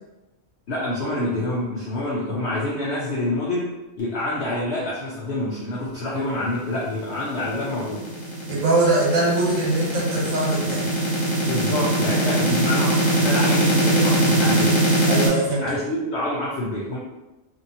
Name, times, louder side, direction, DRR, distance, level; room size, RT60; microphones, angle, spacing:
voice 1, 0.7-3.7 4.0-8.0 11.4-14.8 15.6-17.0, left 1 dB, 60° left, -6 dB, 0.8 m, -27 dB
sound 1, 7.2-15.3, right 1 dB, 35° left, 0.4 m, -21 dB
voice 2, 8.5-10.9 15.1-15.6, right 2 dB, 90° right, -4 dB, 1.3 m, -22 dB
2.7 x 2.7 x 2.6 m, 1.0 s
omnidirectional pair, 1.4 m